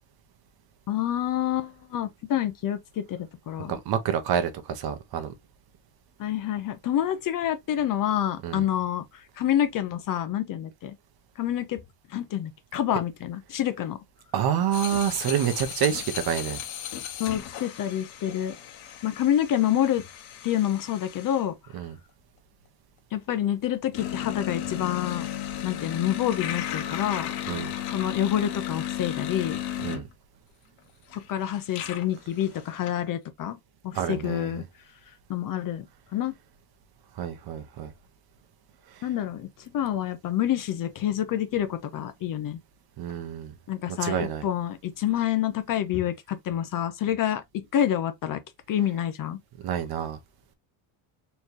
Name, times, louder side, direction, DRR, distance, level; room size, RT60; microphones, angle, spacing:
voice 1, 0.9-3.7 6.2-10.9 11.4-11.8 12.1-14.0 17.2-18.6 19.0-20.0 20.4-21.6 23.1-25.3 25.6-27.3 27.9-29.6 31.3-33.6 33.8-34.6 35.3-35.9 36.1-36.3 39.0-39.5 39.7-42.6 43.7-47.4 47.7-48.4 48.7-49.4, left 11 dB, 40° left, 0.8 m, -27 dB
voice 2, 3.7-5.3 8.4-8.6 14.3-16.6 21.7-22.0 27.5-27.7 29.8-30.1 33.9-34.6 37.2-37.9 43.0-43.5 43.9-44.4 49.6-50.2, right 9 dB, 45° right, 1.0 m, -28 dB
sound 1, 14.7-21.5 23.9-30.1 30.8-30.9 31.1-32.9, left 11 dB, 90° left, 1.4 m, -35 dB
4.3 x 3.4 x 2.8 m
cardioid pair, 145°, 50 cm